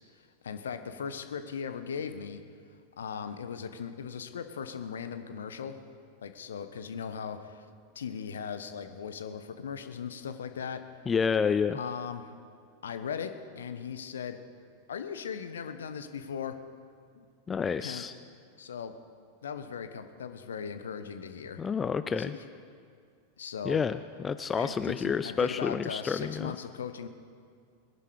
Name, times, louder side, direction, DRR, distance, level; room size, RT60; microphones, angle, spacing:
voice 1, 0.2-2.4 3.0-5.8 6.2-7.7 7.9-10.8 11.7-12.3 12.8-14.4 14.9-16.6 17.1-17.3 17.8-18.0 18.6-18.9 19.4-21.6 22.1-22.2 23.4-23.8 24.6-27.1, left 7 dB, 65° left, 9 dB, 1.0 m, -38 dB
voice 2, 11.1-11.8 17.5-18.1 21.6-22.4 23.6-26.5, left 6 dB, 20° left, 12 dB, 0.4 m, -29 dB
21.0 x 11.0 x 5.0 m, 2.2 s
figure-of-eight pair, 90°, 0 cm